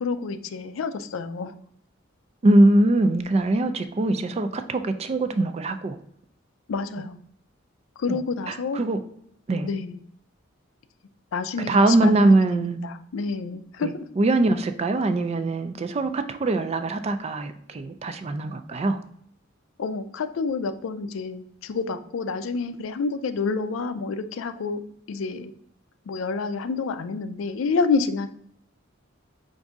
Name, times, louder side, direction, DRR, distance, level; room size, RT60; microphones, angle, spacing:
voice 1, 0.0-1.5 6.7-7.2 8.0-8.8 9.6-10.0 11.3-14.0 19.8-24.8 25.1-25.5 26.1-28.3, left 4 dB, 85° left, 10 dB, 0.4 m, -28 dB
voice 2, 2.4-6.0 8.1-8.2 8.5-9.0 9.5-9.7 11.7-12.8 13.8-19.0, right 2 dB, 30° right, 9 dB, 0.3 m, -22 dB
5.0 x 2.6 x 3.5 m, 0.69 s
head